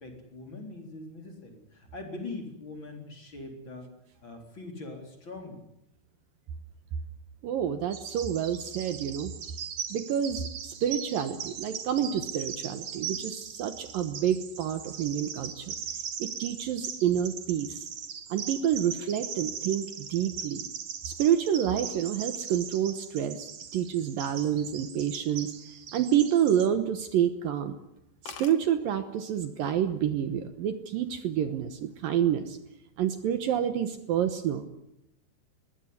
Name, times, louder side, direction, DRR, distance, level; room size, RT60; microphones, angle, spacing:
voice 1, 0.0-3.9 4.2-5.6, left 2 dB, 30° left, 3 dB, 4.2 m, -42 dB
voice 2, 7.4-9.3 9.9-15.7 16.2-17.8 18.3-20.6 21.0-23.5 23.7-25.5 25.9-27.8 28.2-32.6 33.0-34.7, right 9 dB, 70° right, 10 dB, 2.6 m, -28 dB
Bird vocalization bird call bird song, 7.9-26.7, right 7 dB, 50° right, 2.8 m, -39 dB
sound 1, 25.8-26.8 27.1-27.4 27.7-27.8 28.0-28.1 28.3-28.6 29.5-29.8 30.2-30.6, left 7 dB, 50° left, 2.4 m, -46 dB
21.0 x 18.5 x 9.6 m, 0.78 s
omnidirectional pair, 4.7 m